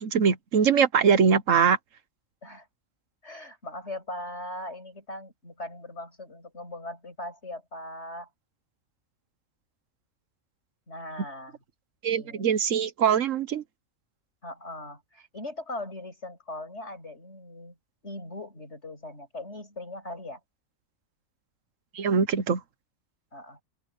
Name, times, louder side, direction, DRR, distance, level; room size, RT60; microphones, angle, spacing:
voice 1, 0.0-1.8 12.0-13.6 21.9-22.6, right 6 dB, 75° right, 1.4 m, -22 dB
voice 2, 3.2-8.3 10.9-11.6 12.1-12.5 14.4-17.8 18.0-20.4 23.3-23.6, left 1 dB, 55° left, 7.8 m, -40 dB
open air
omnidirectional pair, 1.4 m